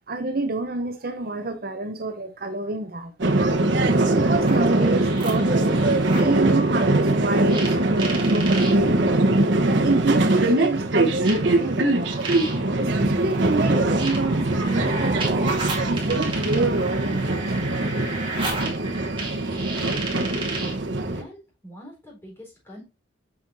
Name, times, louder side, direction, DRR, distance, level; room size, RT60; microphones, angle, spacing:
voice 1, 0.1-3.1 4.2-9.2 9.6-12.1 12.8-17.7, right 2 dB, 50° right, 0.8 m, -28 dB
sound 1, 3.2-21.2, right 2 dB, 70° right, 1.2 m, -22 dB
sound 2, 4.3-6.4 7.5-8.8 9.8-9.9 11.2-20.8, right 3 dB, 25° right, 2.2 m, -34 dB
voice 2, 19.5-20.6 21.1-22.8, equal, 10° left, 4.3 m, -45 dB
7.6 x 6.1 x 2.7 m
head